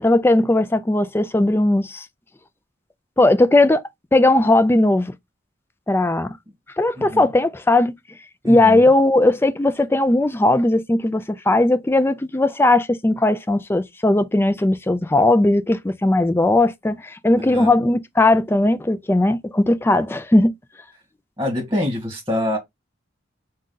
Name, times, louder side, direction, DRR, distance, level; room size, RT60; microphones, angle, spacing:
voice 1, 0.0-2.1 3.2-3.8 4.1-5.1 5.9-6.3 6.8-7.9 8.4-20.5, left 2 dB, 10° left, 0.4 m, -18 dB
voice 2, 7.0-7.3 8.4-8.9 17.4-17.7 21.4-22.6, left 1 dB, 15° right, 1.6 m, -25 dB
5.4 x 2.5 x 3.8 m
head